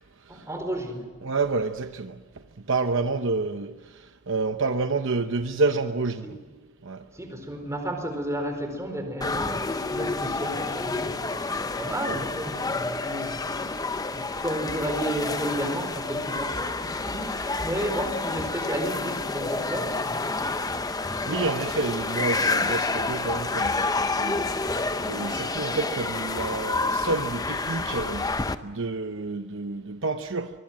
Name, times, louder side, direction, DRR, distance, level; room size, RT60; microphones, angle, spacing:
voice 1, 0.3-1.1 6.2-6.3 7.1-13.6 14.1-21.1, right 1 dB, 15° right, 4 dB, 4.5 m, -33 dB
voice 2, 1.2-2.1 2.7-3.7 4.3-6.3 6.8-7.0 21.3-24.4 25.0-28.2 28.6-30.5, right 3 dB, 60° right, 8 dB, 0.9 m, -28 dB
sound 1, 9.2-28.6, left 3 dB, 15° left, 0.7 m, -29 dB
24.0 x 22.5 x 7.6 m, 1.4 s
head